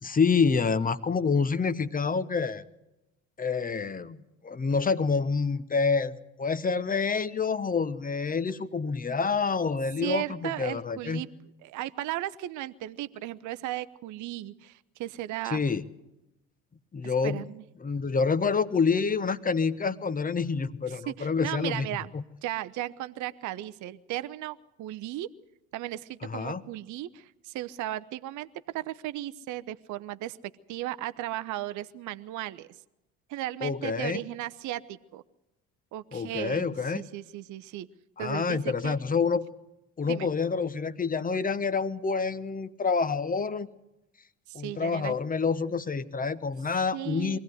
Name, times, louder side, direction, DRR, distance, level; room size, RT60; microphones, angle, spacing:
voice 1, 0.0-2.6 3.4-4.2 4.4-11.3 15.5-15.8 16.9-17.4 17.8-21.9 22.1-22.2 26.2-26.6 33.6-34.2 36.1-37.0 38.2-39.5 40.0-43.7 44.5-47.4, left 5 dB, 20° left, 15 dB, 0.9 m, -27 dB
voice 2, 10.0-11.3 11.6-15.6 17.0-17.6 20.9-22.1 22.4-25.3 25.7-30.4 30.7-32.7 33.3-35.2 35.9-36.6 36.9-37.9 38.2-39.0 40.1-40.3 44.5-45.2 46.9-47.4, right 14 dB, 45° right, 13 dB, 0.7 m, -36 dB
23.0 x 15.5 x 8.1 m, 0.94 s
figure-of-eight pair, 55°, 41 cm